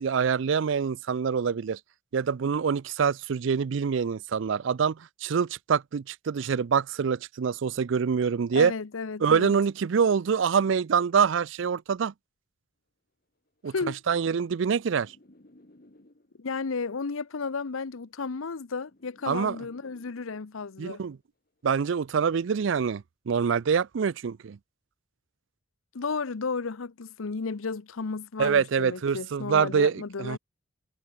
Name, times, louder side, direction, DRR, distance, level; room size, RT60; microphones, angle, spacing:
voice 1, 0.0-1.8 2.1-8.7 9.2-12.1 13.6-13.7 14.1-15.1 19.3-19.6 20.8-21.2 21.6-24.6 28.4-30.4, right 6 dB, 65° right, 0.4 m, -25 dB
voice 2, 8.5-9.5 13.7-14.0 16.4-21.0 25.9-30.4, left 4 dB, 80° left, 0.7 m, -33 dB
sound 1, 13.6-16.6 17.6-20.6 21.6-22.0, left 1 dB, 45° left, 1.6 m, -59 dB
head